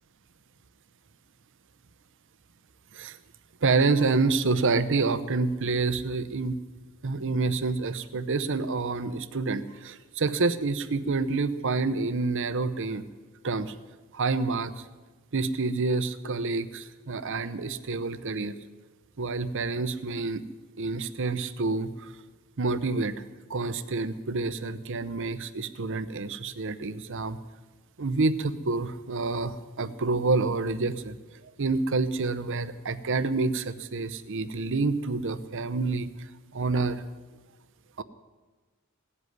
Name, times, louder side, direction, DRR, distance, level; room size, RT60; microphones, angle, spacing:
voice 1, 3.6-6.6 7.0-13.1 13.4-13.7 14.1-14.7 15.3-18.6 19.2-20.4 20.8-22.1 22.6-23.2 23.5-27.4 28.0-31.2 31.6-37.0 38.0-38.1, right 3 dB, 60° right, 13 dB, 0.8 m, -28 dB
16.5 x 8.3 x 9.4 m, 1.3 s
head